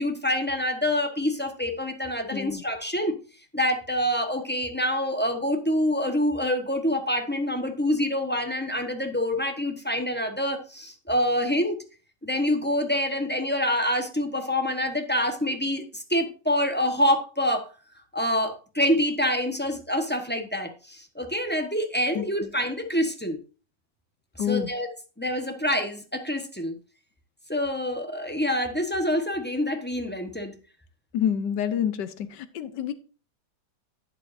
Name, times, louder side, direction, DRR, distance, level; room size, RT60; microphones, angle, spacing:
voice 1, 0.0-3.1 3.5-11.8 12.2-17.7 18.1-23.4 24.5-24.9 25.2-26.8 27.5-30.5, left 1 dB, 10° left, 0.8 m, -26 dB
voice 2, 2.3-2.6 22.1-22.5 24.4-24.7 31.1-32.9, left 9 dB, 80° left, 1.5 m, -28 dB
11.5 x 8.0 x 2.6 m
omnidirectional pair, 1.8 m